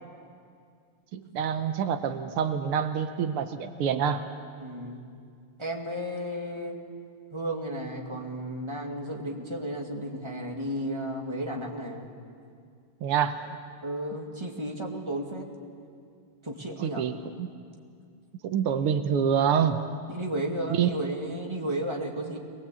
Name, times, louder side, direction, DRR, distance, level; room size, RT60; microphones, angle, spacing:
voice 1, 1.1-4.2 13.0-13.6 16.8-17.5 18.4-19.8 20.7-20.9, right 8 dB, 90° right, 8 dB, 1.8 m, -26 dB
voice 2, 4.6-5.0 5.6-6.8 7.3-12.1 13.8-15.5 16.4-17.0 20.1-22.4, right 1 dB, 15° right, 0 dB, 2.1 m, -33 dB
23.0 x 20.0 x 8.3 m, 2.2 s
omnidirectional pair, 2.4 m